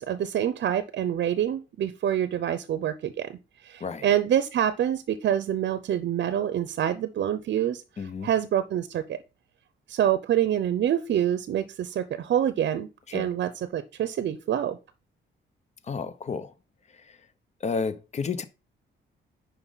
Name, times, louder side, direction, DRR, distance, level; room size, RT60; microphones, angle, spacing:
voice 1, 0.0-3.4 3.6-7.8 8.2-9.2 9.9-14.8, right 10 dB, 60° right, 0.7 m, -26 dB
voice 2, 8.0-8.3 13.1-13.3 15.8-16.5 16.9-17.2 17.6-18.4, left 5 dB, 35° left, 0.8 m, -31 dB
9.9 x 5.2 x 4.1 m
cardioid pair, 150°, 20 cm